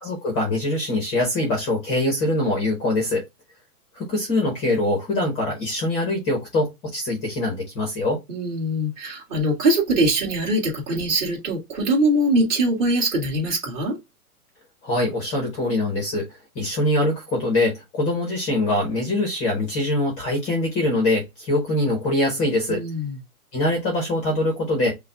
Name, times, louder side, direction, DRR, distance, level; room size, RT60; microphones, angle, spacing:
voice 1, 0.0-3.2 3.9-8.2 14.8-16.3 16.5-22.8 23.5-24.9, left 1 dB, 15° left, 1.1 m, -23 dB
voice 2, 8.3-13.9 22.7-23.2, right 1 dB, 20° right, 2.2 m, -22 dB
5.7 x 2.4 x 3.4 m
hypercardioid pair, 165°, 46 cm